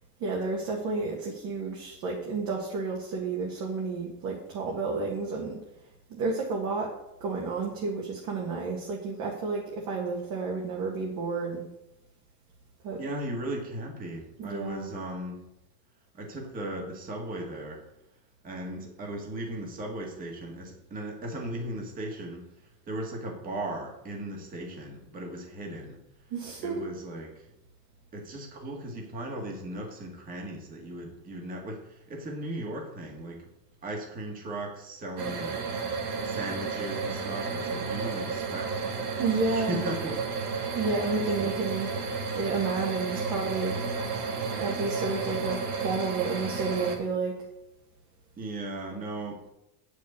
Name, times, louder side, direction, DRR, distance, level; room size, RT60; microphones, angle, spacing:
voice 1, 0.2-5.6 6.2-6.9 7.2-11.6 12.8-13.0 14.4-14.9 26.3-26.9 39.2-39.8 40.8-41.9 42.3-43.8 44.6-47.3, right 4 dB, 35° right, -1 dB, 2.0 m, -31 dB
voice 2, 13.0-15.5 16.1-17.8 18.4-22.5 22.9-26.0 26.6-27.5 28.1-33.5 33.8-35.7 36.2-38.8 39.5-40.3 41.4-41.5 48.4-49.5, right 1 dB, 20° right, 1 dB, 1.9 m, -37 dB
sound 1, 35.2-47.0, right 4 dB, 70° right, 2.8 m, -32 dB
9.0 x 6.4 x 8.5 m, 0.87 s
supercardioid pair, 180°, 47 cm